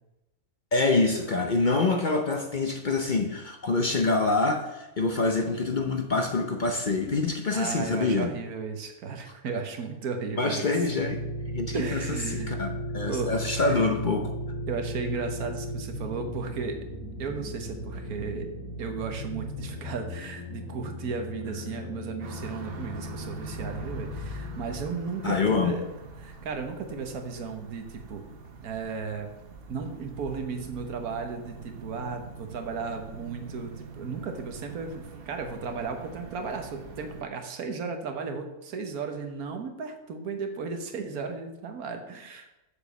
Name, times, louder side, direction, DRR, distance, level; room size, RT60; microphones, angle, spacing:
voice 1, 0.7-8.3 10.4-11.2 11.5-12.0 12.3-12.7 12.9-14.3 25.2-25.8, left 3 dB, 45° left, 4 dB, 0.7 m, -26 dB
voice 2, 7.5-10.7 11.7-12.6 13.1-13.4 13.7-13.9 14.7-16.8 17.2-18.5 18.8-25.8 26.2-28.2 28.6-29.3 29.7-42.5, right 5 dB, 90° right, 5 dB, 1.5 m, -35 dB
sound 1, 10.8-24.8, equal, 85° left, 3.5 m, -36 dB
sound 2, 22.2-37.2, right 4 dB, 50° right, 0.9 m, -44 dB
6.9 x 5.0 x 6.8 m, 0.97 s
omnidirectional pair, 1.5 m